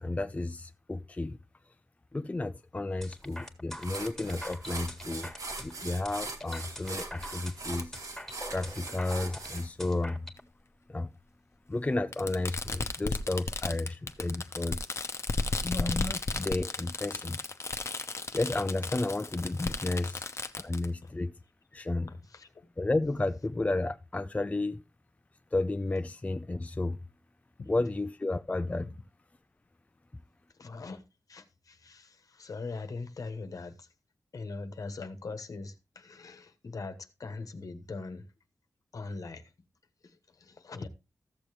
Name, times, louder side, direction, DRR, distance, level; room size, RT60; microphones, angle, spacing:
voice 1, 0.0-1.4 2.1-5.3 5.6-7.9 8.5-10.3 10.9-11.1 11.7-14.8 15.6-17.4 18.3-20.2 20.6-21.3 21.7-22.1 22.8-24.8 25.5-27.0 27.7-28.9, left 2 dB, 20° left, 0.5 m, -32 dB
sound 1, 3.0-10.4, equal, 5° left, 1.7 m, -44 dB
sound 2, 3.3-3.4 3.8-9.7, right 3 dB, 70° right, 1.9 m, -41 dB
Fireworks, 7.8-7.9 9.0-9.1 10.4-10.5 12.1-20.9, left 3 dB, 45° left, 0.9 m, -34 dB
voice 2, 22.0-22.7 27.6-27.7 28.8-28.9 30.5-31.0 31.3-33.9 34.3-38.2 38.9-39.5 40.0-40.9, left 3 dB, 70° left, 1.2 m, -42 dB
14.5 x 6.8 x 3.1 m
cardioid pair, 65°, 6 cm